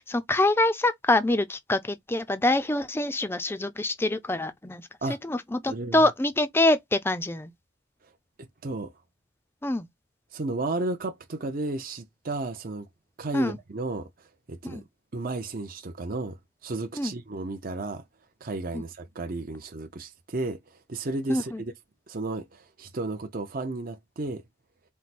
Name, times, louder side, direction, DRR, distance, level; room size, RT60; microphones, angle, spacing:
voice 1, 0.0-4.9 5.2-7.5 9.6-9.9 13.3-13.6 14.7-14.8 17.0-17.1 18.7-18.8 21.3-21.6, left 2 dB, 10° left, 0.4 m, -25 dB
voice 2, 5.7-6.0 8.6-8.9 10.3-12.9 13.2-14.1 14.5-14.8 15.1-16.4 16.6-18.0 18.4-20.6 20.9-21.7 22.1-24.4, right 2 dB, 45° right, 0.7 m, -33 dB
4.6 x 2.1 x 4.2 m
head